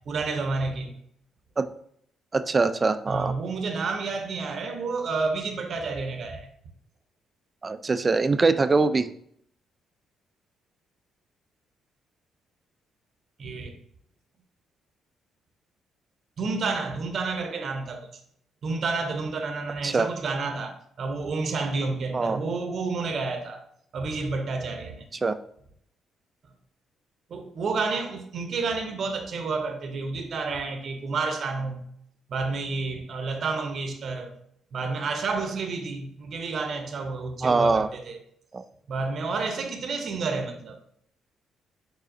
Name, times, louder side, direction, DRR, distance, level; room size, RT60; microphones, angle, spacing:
voice 1, 0.1-0.9 3.1-6.5 13.4-13.8 16.4-18.1 18.6-23.6 23.9-25.1 27.3-31.8 32.3-34.3 34.7-38.2 38.9-40.8, right 4 dB, 55° right, 0.7 m, -30 dB
voice 2, 2.3-3.3 7.6-9.1 19.8-20.1 22.1-22.4 25.1-25.4 37.4-37.9 38.5-38.6, right 3 dB, 30° right, 0.3 m, -23 dB
4.9 x 4.0 x 2.6 m
cardioid pair, 90°, 0 cm